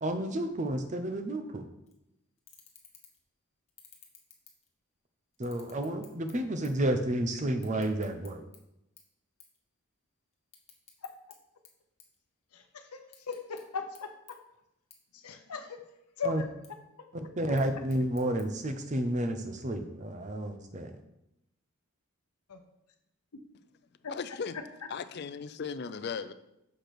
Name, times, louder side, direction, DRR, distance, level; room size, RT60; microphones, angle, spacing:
voice 1, 0.0-1.7 5.4-8.4 16.2-16.4 17.1-20.9, right 1 dB, 35° right, 0.7 m, -31 dB
sound 1, 1.9-2.0 2.4-3.3 3.7-5.0 5.3-6.9 7.2-8.6 9.0-9.1 9.4-9.6 9.9-11.4 11.6-12.6 13.0-13.6 13.9-14.0 14.3-14.4 14.9-15.0 15.4-15.9 16.4-16.7 17.4-18.4, left 7 dB, 30° left, 1.1 m, -56 dB
voice 2, 13.3-14.4 15.2-15.8 16.2-16.4 22.5-22.6, left 4 dB, 90° left, 0.8 m, -37 dB
voice 3, 24.1-24.6 24.9-26.3, left 5 dB, 45° left, 0.4 m, -37 dB
6.5 x 5.0 x 5.9 m
head